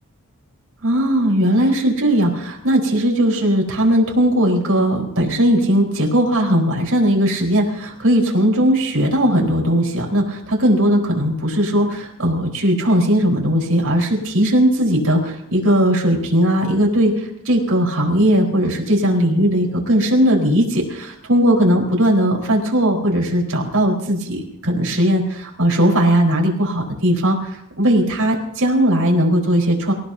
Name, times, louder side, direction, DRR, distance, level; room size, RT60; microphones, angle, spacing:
voice 1, 0.8-29.9, equal, 75° right, 0 dB, 4.2 m, -18 dB
26.5 x 16.0 x 2.7 m, 0.74 s
head